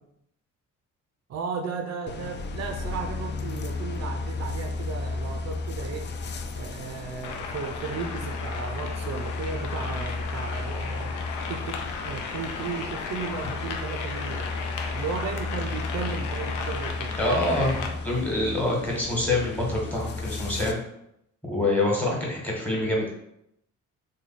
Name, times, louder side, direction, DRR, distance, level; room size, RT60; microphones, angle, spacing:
voice 1, 1.3-6.1 6.5-11.1 11.5-14.5 14.9-17.1, right 5 dB, 60° right, 3 dB, 0.5 m, -35 dB
sound 1, 2.1-20.7, left 3 dB, 40° left, 0.4 m, -34 dB
sound 2, 7.2-17.9, left 5 dB, 80° left, 0.6 m, -35 dB
voice 2, 17.2-20.8 21.5-23.1, left 2 dB, 5° left, -3 dB, 1.2 m, -26 dB
3.1 x 2.2 x 4.0 m, 0.77 s
cardioid pair, 90°, 30 cm